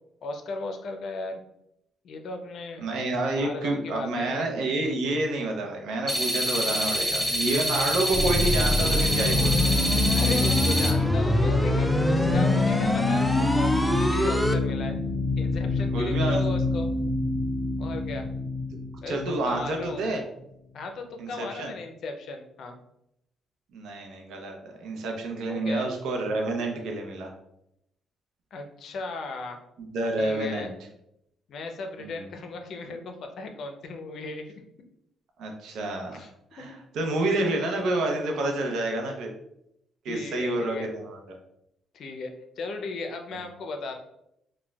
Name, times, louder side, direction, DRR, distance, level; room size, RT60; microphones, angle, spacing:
voice 1, 0.2-1.4 2.0-4.5 6.6-6.9 10.1-14.9 15.4-16.9 17.8-18.2 19.0-20.0 20.7-22.8 25.5-25.9 28.5-29.6 30.2-30.7 31.5-34.5 36.1-36.3 40.1-40.9 41.9-43.9, left 3 dB, 65° left, 5 dB, 0.5 m, -36 dB
voice 2, 2.8-9.7 15.9-16.4 19.1-20.2 21.2-21.7 23.7-27.3 29.8-30.7 32.0-32.3 35.4-36.2 36.5-39.3 40.0-41.4, right 2 dB, 80° right, 2 dB, 0.6 m, -29 dB
sound 1, 6.1-10.9, equal, 15° right, 0.8 m, -27 dB
sound 2, 6.9-20.2, left 3 dB, 20° left, 0.9 m, -27 dB
sound 3, 8.1-14.5, equal, 5° left, 0.3 m, -25 dB
4.2 x 2.2 x 2.3 m, 0.80 s
cardioid pair, 90°, 0 cm